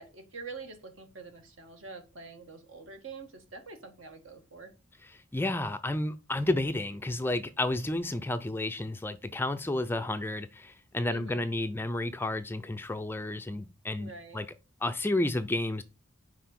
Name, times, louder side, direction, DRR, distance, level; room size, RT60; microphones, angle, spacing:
voice 1, 0.0-4.7 11.1-11.4 14.0-14.4, right 4 dB, 65° right, 1.8 m, -46 dB
voice 2, 5.0-14.5 14.8-15.8, left 2 dB, 10° left, 0.4 m, -31 dB
5.8 x 4.9 x 6.5 m
head